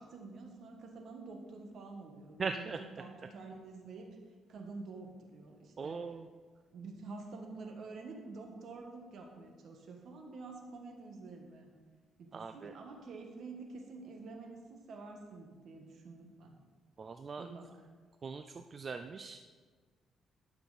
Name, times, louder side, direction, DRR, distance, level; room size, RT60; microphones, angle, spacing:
voice 1, 0.0-4.1 4.5-6.1 6.7-11.7 12.2-16.6 17.4-17.9, right 3 dB, 65° right, 2 dB, 1.5 m, -48 dB
voice 2, 2.4-2.8 5.8-6.3 12.3-12.7 17.0-17.5 18.2-19.4, right 5 dB, 40° right, 7 dB, 0.4 m, -40 dB
12.0 x 6.0 x 4.1 m, 1.5 s
cardioid pair, 90°, 0 cm